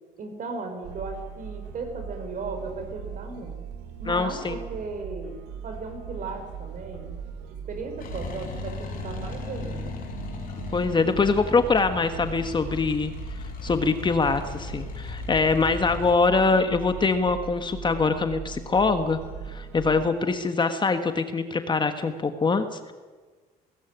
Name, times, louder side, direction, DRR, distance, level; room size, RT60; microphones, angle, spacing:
voice 1, 0.2-3.6 4.0-5.4 5.6-7.1 7.7-10.0, right 3 dB, 50° right, 6 dB, 5.0 m, -36 dB
sound 1, 0.8-20.1, right 7 dB, 90° right, 1.6 m, -39 dB
voice 2, 4.1-4.6 10.7-13.1 13.6-19.2 19.5-22.9, left 4 dB, 25° left, 8 dB, 1.5 m, -23 dB
sound 2, 8.0-16.1, left 6 dB, 55° left, 5.2 m, -38 dB
18.0 x 16.5 x 9.9 m, 1.4 s
cardioid pair, 110°, 17 cm